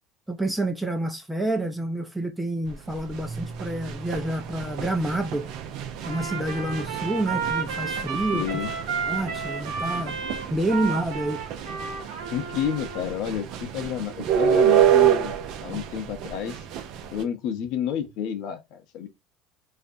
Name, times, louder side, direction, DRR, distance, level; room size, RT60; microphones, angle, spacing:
voice 1, 0.3-5.5 6.0-8.5 9.1-10.1 10.5-11.4, right 1 dB, 5° right, 0.5 m, -28 dB
sound 1, 2.7-17.2, right 9 dB, 60° right, 0.4 m, -28 dB
Keyboard (musical), 3.2-6.3, right 4 dB, 45° right, 0.9 m, -42 dB
Trumpet, 6.0-13.1, right 5 dB, 80° right, 1.0 m, -32 dB
voice 2, 8.3-8.7 12.3-16.6 17.1-19.1, left 9 dB, 65° left, 0.6 m, -30 dB
2.4 x 2.0 x 2.6 m
hypercardioid pair, 85°, 0 cm